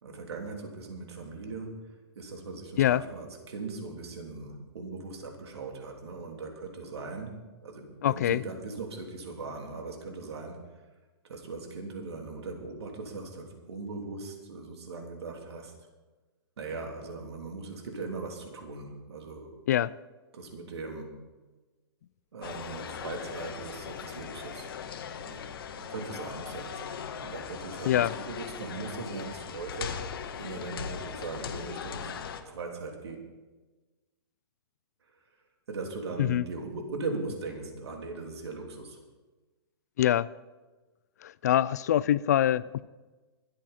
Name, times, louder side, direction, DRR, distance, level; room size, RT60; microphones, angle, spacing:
voice 1, 0.0-7.3 7.6-10.6 11.2-15.7 16.6-19.6 20.3-21.2 22.3-24.7 25.2-25.5 25.8-30.0 30.4-32.2 32.4-33.2 35.7-39.0, right 3 dB, 85° right, 3.3 m, -39 dB
voice 2, 8.0-8.4 19.7-19.9 27.9-28.1 36.2-36.4 40.0-40.3 41.2-42.9, left 12 dB, 40° left, 0.3 m, -24 dB
sound 1, 22.4-32.4, left 7 dB, 65° left, 1.5 m, -39 dB
24.0 x 8.9 x 4.3 m
hypercardioid pair, 170°, 13 cm